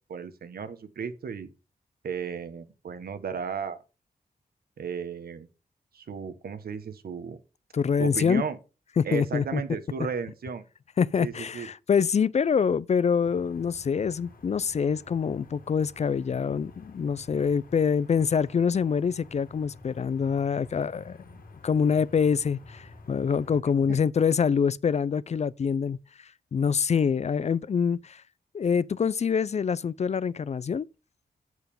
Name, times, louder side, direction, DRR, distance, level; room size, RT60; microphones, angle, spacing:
voice 1, 0.1-1.5 2.0-3.8 4.8-5.5 5.9-7.4 8.0-8.6 9.0-10.6 11.2-11.7, right 6 dB, 80° right, 1.3 m, -34 dB
voice 2, 7.7-8.4 9.0-9.6 11.0-21.2 21.6-26.0 26.5-28.2 28.5-30.9, left 6 dB, 45° left, 0.4 m, -25 dB
sound 1, 13.2-23.6, left 3 dB, 65° left, 1.9 m, -51 dB
8.0 x 6.9 x 5.3 m
cardioid pair, 85°, 16 cm